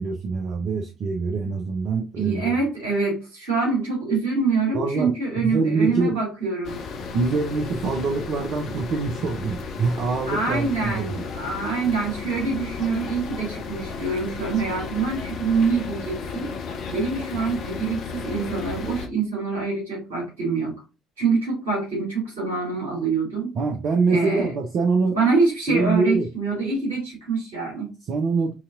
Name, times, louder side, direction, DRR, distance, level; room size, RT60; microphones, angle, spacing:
voice 1, 0.0-2.5 4.7-6.1 7.1-11.1 23.5-25.2 25.7-26.3 28.1-28.5, right 4 dB, 50° right, 0.6 m, -24 dB
voice 2, 2.2-6.8 10.3-16.5 16.9-20.7 21.2-23.5 24.1-24.5 25.1-27.9, right 4 dB, 75° right, 2.7 m, -25 dB
sound 1, 6.6-19.1, left 5 dB, 50° left, 0.7 m, -34 dB
5.8 x 2.9 x 2.6 m
figure-of-eight pair, 50°, 0 cm